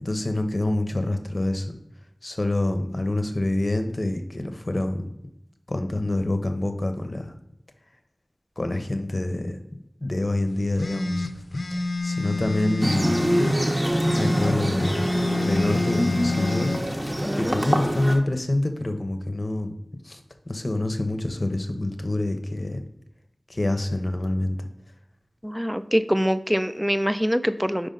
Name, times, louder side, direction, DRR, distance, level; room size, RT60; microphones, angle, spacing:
voice 1, 0.0-1.8 2.2-5.1 5.7-7.3 8.6-9.6 10.0-11.3 11.7-13.2 14.1-15.1 15.5-16.7 17.0-17.1 17.3-19.7 20.0-20.2 20.5-22.8 23.5-24.7, left 1 dB, 45° left, 7 dB, 0.7 m, -26 dB
sound 1, 10.8-13.6 14.0-16.8, left 3 dB, 85° left, 0.5 m, -28 dB
sound 2, 12.8-18.2, equal, 30° right, 0.9 m, -25 dB
voice 2, 17.2-17.5 25.4-27.9, equal, 5° right, 12 dB, 0.3 m, -24 dB
5.2 x 4.9 x 3.8 m, 0.83 s
wide cardioid pair, 50°, 0 cm